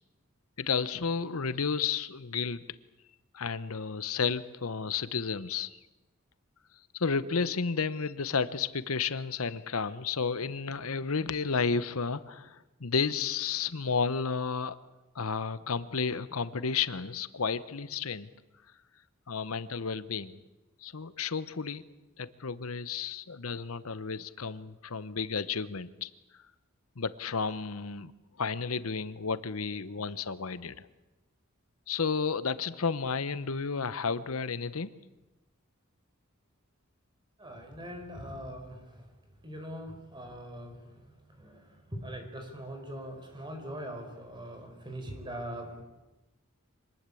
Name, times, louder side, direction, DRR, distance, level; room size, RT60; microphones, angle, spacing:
voice 1, 0.6-2.6 3.3-5.8 6.9-14.8 15.1-18.3 19.3-20.4 20.8-21.8 22.2-26.1 27.0-28.1 28.4-30.9 31.9-35.0, left 5 dB, 85° left, 14 dB, 0.9 m, -32 dB
voice 2, 37.4-39.1 39.4-40.9 41.4-45.8, equal, 20° right, 5 dB, 4.6 m, -42 dB
25.0 x 19.5 x 8.5 m, 1.1 s
head